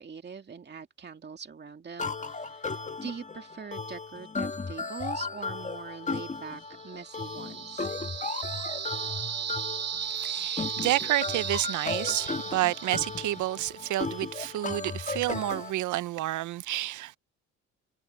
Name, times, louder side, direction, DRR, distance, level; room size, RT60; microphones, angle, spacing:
voice 1, 0.0-7.9, right 6 dB, 35° right, 2.2 m, -43 dB
sound 1, 2.0-15.7, left 4 dB, 25° left, 1.5 m, -35 dB
sound 2, 6.7-13.7, right 8 dB, 55° right, 2.5 m, -36 dB
voice 2, 10.1-17.2, right 15 dB, 75° right, 0.7 m, -30 dB
cardioid pair, 90°, 30 cm